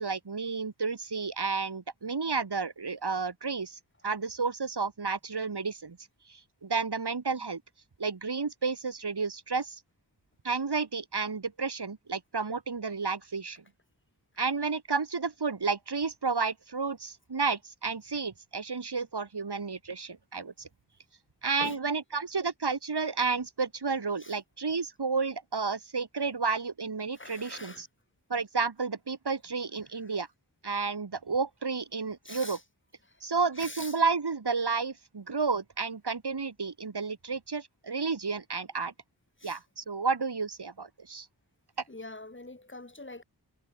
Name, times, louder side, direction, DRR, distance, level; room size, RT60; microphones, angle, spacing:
voice 1, 0.0-6.0 6.3-7.6 8.0-9.8 10.4-13.6 14.4-20.7 21.4-27.9 28.3-30.3 30.6-32.6 33.2-38.9 39.4-41.3, right 4 dB, 70° right, 6.2 m, -31 dB
voice 2, 27.1-27.8 30.0-30.1 32.2-32.6 33.0-33.2 33.6-34.0 39.4-39.6 41.9-43.2, left 2 dB, 30° left, 4.3 m, -44 dB
wide cardioid pair, 70°, 40 cm